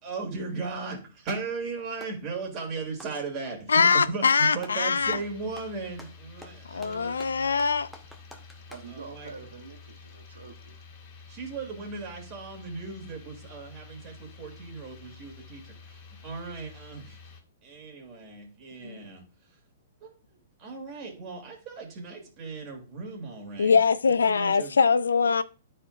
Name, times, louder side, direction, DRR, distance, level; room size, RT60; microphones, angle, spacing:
voice 1, 0.0-7.4 8.9-9.4 11.3-17.2 17.6-19.2 20.0-20.1 20.6-23.8 24.0-24.8, right 4 dB, 35° right, 2.6 m, -37 dB
Clapping, 1.5-2.3 2.9-4.1 4.6-4.8 5.1-8.9, left 1 dB, ahead, 0.9 m, -49 dB
voice 2, 3.7-5.2 6.7-7.9 18.8-19.0 23.6-25.4, left 5 dB, 80° left, 0.4 m, -22 dB
sound 1, 5.0-17.4, left 4 dB, 40° left, 2.4 m, -49 dB
voice 3, 8.3-10.8, right 5 dB, 75° right, 1.0 m, -46 dB
12.0 x 4.3 x 2.5 m
hypercardioid pair, 115°, 0 cm